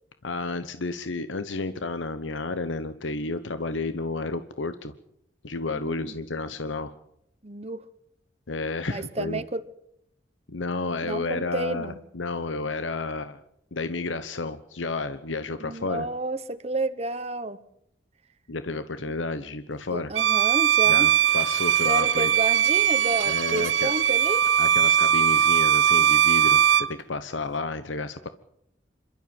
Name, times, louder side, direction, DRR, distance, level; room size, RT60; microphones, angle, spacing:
voice 1, 0.2-4.9 5.4-6.9 8.5-9.4 10.5-13.4 13.7-16.1 18.5-20.1 20.9-22.3 23.2-23.9 24.6-28.3, left 3 dB, 85° left, 11 dB, 1.0 m, -31 dB
voice 2, 5.7-6.1 7.4-7.8 8.9-9.7 11.0-12.0 15.6-17.6 19.9-21.1 21.8-24.5, right 2 dB, 35° right, 10 dB, 1.0 m, -31 dB
Bowed string instrument, 20.2-26.9, right 9 dB, 80° right, 0.8 m, -20 dB
27.0 x 12.5 x 8.9 m, 0.76 s
head